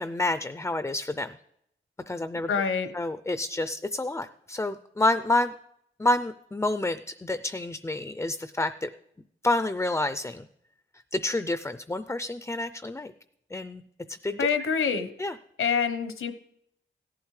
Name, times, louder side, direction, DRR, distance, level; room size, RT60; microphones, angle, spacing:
voice 1, 0.0-1.4 2.1-2.5 2.9-5.5 6.0-8.9 9.4-10.5 11.1-13.1 13.5-13.8 14.1-14.5 15.2-15.3, left 2 dB, 15° left, 11 dB, 0.4 m, -28 dB
voice 2, 2.5-2.9 14.4-15.1 15.6-16.3, left 6 dB, 80° left, 10 dB, 1.0 m, -26 dB
17.0 x 11.5 x 3.2 m, 0.75 s
cardioid pair, 70°, 21 cm